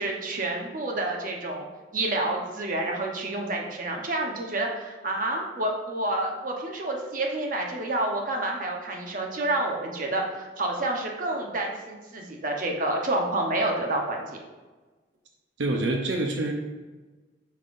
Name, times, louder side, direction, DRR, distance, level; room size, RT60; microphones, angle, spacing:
voice 1, 0.0-1.6 1.9-14.4, right 2 dB, 45° right, 1 dB, 1.0 m, -29 dB
voice 2, 15.6-16.5, right 2 dB, 80° right, 2 dB, 0.8 m, -26 dB
8.3 x 5.8 x 2.6 m, 1.3 s
head